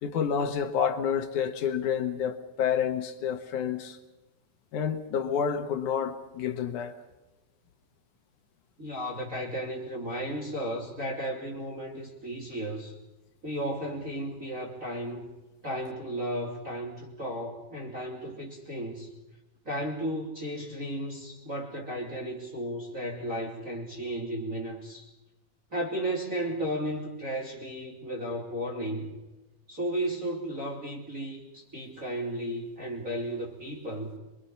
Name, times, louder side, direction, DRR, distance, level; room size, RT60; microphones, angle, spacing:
voice 1, 0.0-4.0 4.7-6.9, left 7 dB, 65° left, 2.5 m, -29 dB
voice 2, 8.8-13.0 13.4-15.3 15.6-19.1 19.6-25.1 25.7-29.1 29.7-34.2, right 1 dB, 25° right, 3.0 m, -34 dB
26.5 x 23.0 x 5.7 m
omnidirectional pair, 4.3 m